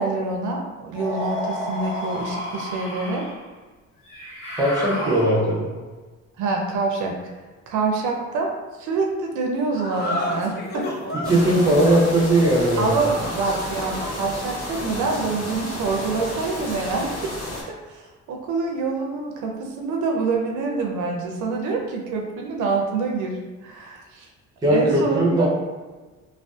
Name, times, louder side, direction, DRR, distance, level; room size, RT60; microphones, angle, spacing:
voice 1, 0.0-3.3 6.4-7.2 7.7-8.5 8.8-10.9 12.8-17.3 17.7-24.3 24.7-25.5, right 4 dB, 75° right, 1 dB, 0.5 m, -26 dB
sound 1, 0.9-3.4 4.1-5.7, equal, 90° left, 0.9 m, -31 dB
voice 2, 4.6-5.7 11.1-13.0 24.6-25.5, right 1 dB, 15° right, -4 dB, 0.6 m, -19 dB
sound 2, 9.7-16.4, left 1 dB, 35° left, 0.4 m, -33 dB
steady rain in the city, 11.2-17.6, left 1 dB, 60° left, 0.9 m, -32 dB
2.5 x 2.3 x 2.3 m, 1.3 s
cardioid pair, 125°, 30 cm